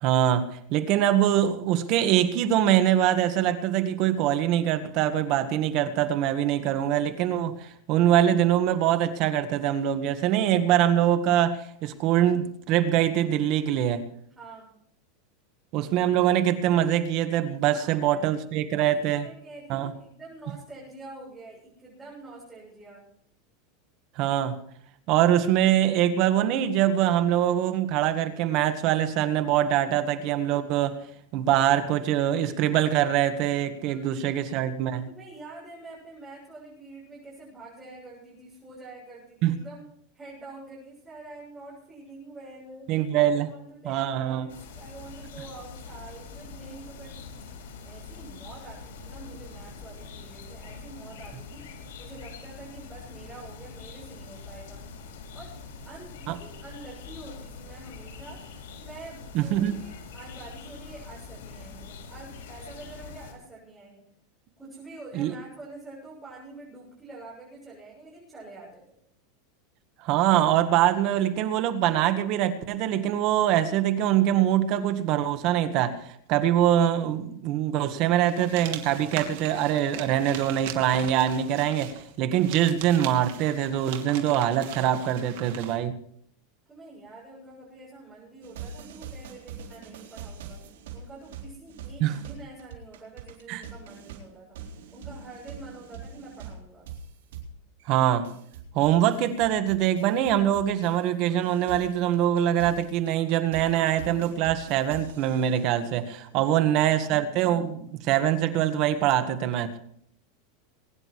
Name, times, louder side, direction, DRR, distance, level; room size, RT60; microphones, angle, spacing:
voice 1, 0.0-14.0 15.7-19.3 19.7-19.9 24.1-24.6 25.1-31.0 31.3-35.1 39.4-39.6 42.9-43.5 43.8-44.5 56.3-56.4 59.3-59.7 65.1-65.3 70.0-85.9 92.0-92.2 93.5-93.6 97.9-98.3 98.7-109.8, right 11 dB, 45° right, 9 dB, 1.7 m, -23 dB
voice 2, 14.4-14.7 17.6-18.3 18.8-23.0 29.8-29.9 33.8-34.6 35.1-39.8 40.1-42.9 43.3-47.5 47.8-54.8 55.3-55.5 55.9-64.0 64.6-68.8 86.7-90.6 90.9-94.6 94.9-96.9 106.3-106.9, right 2 dB, 10° right, -7 dB, 7.5 m, -46 dB
sound 1, 44.5-63.3, left 4 dB, 90° left, 5.1 m, -44 dB
sound 2, 78.3-85.8, right 12 dB, 65° right, 2.8 m, -41 dB
sound 3, 88.4-101.1 101.4-105.8, right 6 dB, 85° right, 4.0 m, -43 dB
22.5 x 10.5 x 4.8 m, 0.65 s
supercardioid pair, 160°, 0 cm